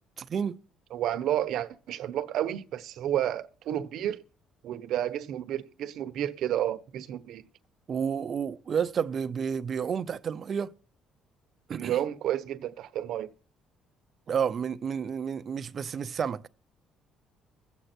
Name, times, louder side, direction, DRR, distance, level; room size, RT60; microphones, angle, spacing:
voice 1, 0.2-0.6 7.9-10.7 11.7-12.0 14.3-16.4, right 7 dB, 40° right, 0.7 m, -30 dB
voice 2, 0.9-4.2 4.6-7.5 11.7-13.3, right 11 dB, 65° right, 0.9 m, -31 dB
21.5 x 8.0 x 4.4 m
cardioid pair, 135°, 0 cm